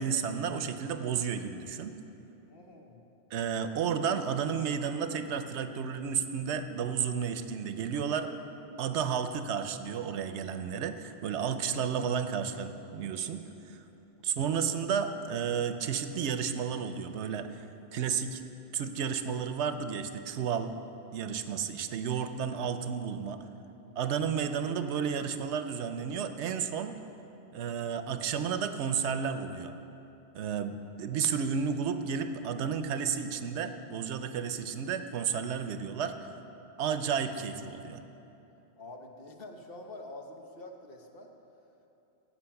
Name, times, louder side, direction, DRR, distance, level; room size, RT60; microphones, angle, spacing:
voice 1, 0.0-1.9 3.3-8.3 8.8-13.8 14.2-17.6 17.9-18.4 18.7-20.8 21.1-23.4 24.0-27.0 27.5-29.7 30.3-36.1 36.8-38.0, right 7 dB, 90° right, 9 dB, 0.9 m, -32 dB
voice 2, 2.5-3.1 23.3-24.0 38.8-41.3, left 2 dB, 60° left, 3 dB, 1.2 m, -47 dB
16.0 x 6.0 x 5.8 m, 2.9 s
omnidirectional pair, 1.1 m